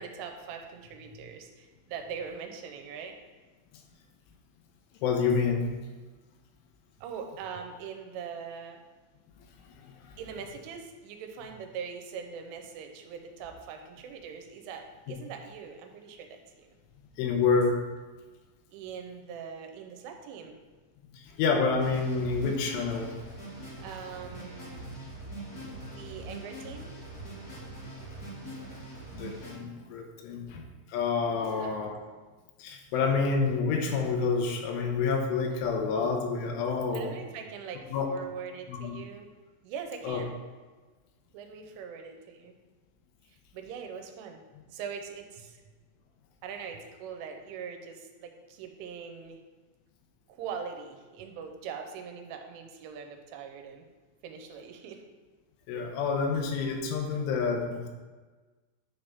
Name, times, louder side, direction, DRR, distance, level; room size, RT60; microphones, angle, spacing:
voice 1, 0.0-3.1 7.0-8.8 10.2-16.7 18.7-20.6 23.8-24.8 25.8-26.9 31.3-31.8 36.9-39.3 39.6-40.3 41.3-42.6 43.5-44.4 44.7-45.6 46.4-49.4 50.3-53.8 54.2-55.0, right 6 dB, 85° right, 4 dB, 3.3 m, -42 dB
voice 2, 5.0-5.7 9.8-10.1 17.2-17.8 21.1-23.1 29.1-30.6 30.9-32.0 32.6-37.1 37.9-38.1 38.7-39.0 40.0-40.2 55.7-57.9, left 5 dB, 85° left, 2 dB, 3.3 m, -28 dB
sound 1, 21.8-29.5, right 1 dB, 65° left, 0.9 m, -42 dB
10.0 x 3.5 x 5.5 m, 1.3 s
omnidirectional pair, 5.6 m